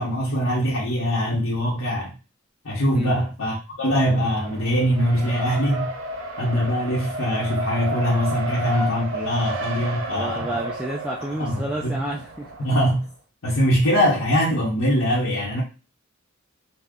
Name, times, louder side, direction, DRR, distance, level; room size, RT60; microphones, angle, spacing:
voice 1, 0.0-2.2 2.6-5.9 6.4-10.6 11.4-12.0 12.6-13.1 13.4-15.6, equal, 70° left, 0.8 m, -22 dB
Race car auto racing, 4.0-13.0, right 1 dB, 70° right, 0.5 m, -32 dB
voice 2, 10.1-12.5, right 1 dB, 5° right, 0.4 m, -30 dB
2.4 x 2.0 x 3.5 m
head